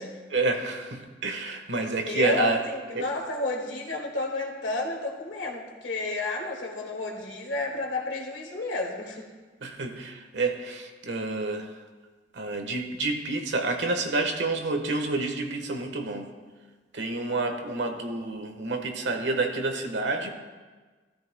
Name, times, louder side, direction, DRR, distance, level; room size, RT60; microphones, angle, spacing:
voice 1, 0.3-2.6 2.9-3.1 9.6-11.7 12.3-16.3 16.9-20.3, right 3 dB, 75° right, 4 dB, 1.3 m, -29 dB
voice 2, 2.0-9.3, left 2 dB, 75° left, 0 dB, 2.0 m, -31 dB
16.0 x 13.5 x 2.2 m, 1.4 s
head